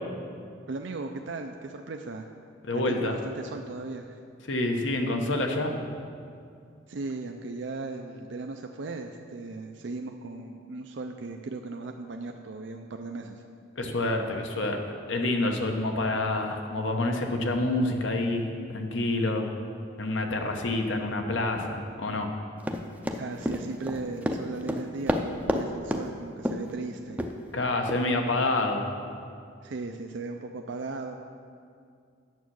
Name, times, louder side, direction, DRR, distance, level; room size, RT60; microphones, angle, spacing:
voice 1, 0.7-2.3 2.7-4.2 6.9-13.4 23.2-27.2 29.6-31.2, right 3 dB, 65° right, 4 dB, 0.5 m, -37 dB
voice 2, 2.7-3.2 4.5-5.8 13.8-14.8 15.1-19.5 20.0-22.3 27.5-28.9, left 2 dB, 75° left, 3 dB, 1.1 m, -27 dB
Run, 22.6-25.6 25.9-26.1 26.4-26.7 27.2-27.3 27.9-28.0, equal, 5° right, 0.5 m, -29 dB
9.3 x 7.2 x 6.3 m, 2.3 s
head